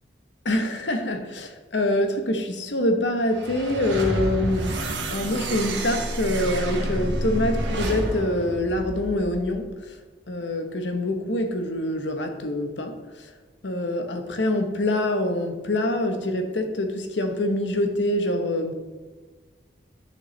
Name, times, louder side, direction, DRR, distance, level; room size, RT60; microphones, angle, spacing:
voice 1, 0.4-4.8 5.1-10.0 10.3-13.3 13.6-18.7, left 1 dB, 85° left, 1.1 m, -25 dB
sound 1, 3.3-9.5, right 1 dB, 90° right, 1.5 m, -29 dB
10.5 x 6.7 x 3.3 m
head